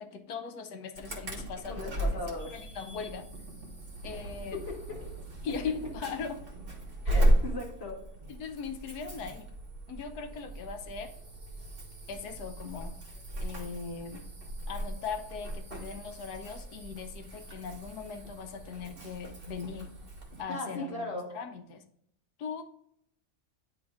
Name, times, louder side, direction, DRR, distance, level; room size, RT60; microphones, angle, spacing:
voice 1, 0.0-3.3 4.0-4.6 5.4-6.4 7.0-7.2 8.3-9.5 9.9-11.1 12.1-13.0 13.4-14.2 14.7-19.9 20.4-21.8 22.4-22.6, left 5 dB, 90° left, 7 dB, 1.3 m, -39 dB
Insect / Alarm, 1.0-20.4, right 1 dB, 40° right, 1.4 m, -35 dB
voice 2, 1.7-2.5 2.8-3.0 4.0-4.3 4.5-4.8 7.0-8.0 20.5-21.3, left 2 dB, 40° left, -3 dB, 1.9 m, -38 dB
9.9 x 3.4 x 3.5 m, 0.73 s
omnidirectional pair, 1.6 m